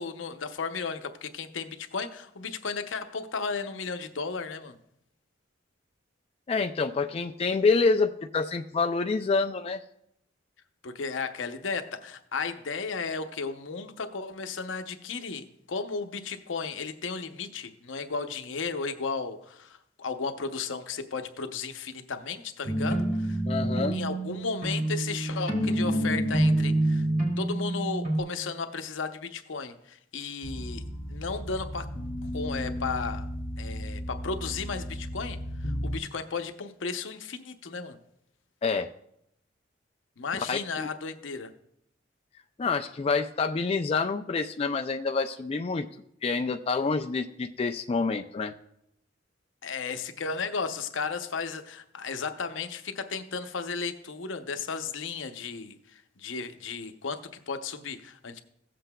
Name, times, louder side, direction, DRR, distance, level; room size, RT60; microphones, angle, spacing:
voice 1, 0.0-4.8 10.8-23.4 23.9-27.1 27.4-31.9 32.2-33.3 33.6-38.0 40.2-41.5 49.6-58.4, left 4 dB, 85° left, 8 dB, 0.7 m, -34 dB
voice 2, 6.5-9.8 23.5-24.0 38.6-38.9 40.5-40.9 42.6-45.9 46.2-48.5, left 4 dB, 30° left, 6 dB, 0.3 m, -27 dB
sound 1, 22.7-28.2, right 1 dB, 45° right, 3.2 m, -27 dB
sound 2, 30.4-36.0, equal, 65° left, 1.9 m, -35 dB
16.5 x 7.7 x 2.2 m, 0.76 s
head